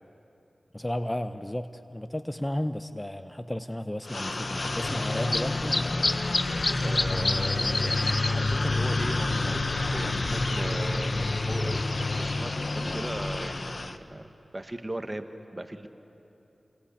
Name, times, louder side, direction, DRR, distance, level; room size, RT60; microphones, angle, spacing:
voice 1, 0.7-6.2 6.8-7.2 12.8-13.0, left 1 dB, 15° left, 10 dB, 0.8 m, -34 dB
sound 1, 4.1-14.0, left 2 dB, 50° left, 1.0 m, -27 dB
voice 2, 6.3-11.9 12.2-15.3 15.5-15.9, right 1 dB, 25° right, 8 dB, 1.5 m, -38 dB
27.5 x 21.5 x 8.5 m, 2.9 s
cardioid pair, 50°, 0 cm